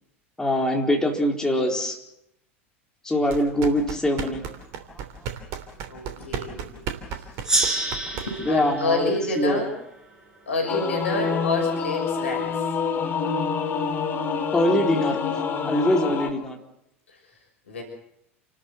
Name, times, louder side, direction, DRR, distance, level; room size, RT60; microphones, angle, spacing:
voice 1, 0.4-2.0 3.0-4.4 8.5-9.6 14.5-15.2 15.6-16.6, left 1 dB, 10° left, 2 dB, 4.2 m, -23 dB
sound 1, 3.2-8.6, right 7 dB, 45° right, 3.0 m, -35 dB
voice 2, 5.9-6.8 7.1-7.6 8.1-9.7 10.5-12.6 17.1-17.2 17.7-17.8, left 2 dB, 70° left, 2 dB, 6.5 m, -28 dB
Gong, 7.4-10.6, right 2 dB, 10° right, 5.2 m, -29 dB
Singing / Musical instrument, 10.7-16.3, left 5 dB, 30° left, 2.7 m, -27 dB
29.0 x 13.5 x 8.0 m, 0.79 s
figure-of-eight pair, 80°, 7 cm